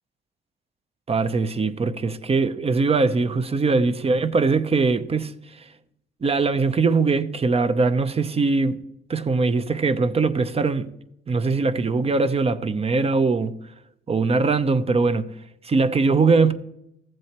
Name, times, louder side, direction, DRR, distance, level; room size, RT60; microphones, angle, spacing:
voice 1, 1.1-5.6 6.2-8.8 9.1-10.9 11.3-13.6 14.1-15.3 15.6-16.5, right 4 dB, 30° right, 0.7 m, -21 dB
15.0 x 7.6 x 3.0 m
cardioid pair, 90°, 20 cm